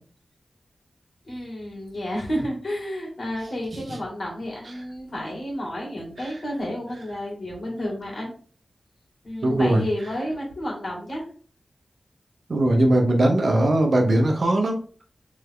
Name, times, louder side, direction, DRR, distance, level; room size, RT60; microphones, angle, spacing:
voice 1, 1.3-8.3 9.2-11.3, equal, 60° left, -2 dB, 2.2 m, -31 dB
voice 2, 9.4-9.8 12.5-14.8, right 1 dB, 60° right, 3 dB, 0.9 m, -20 dB
3.6 x 3.3 x 3.6 m, 0.42 s
wide cardioid pair, 90°, 0 cm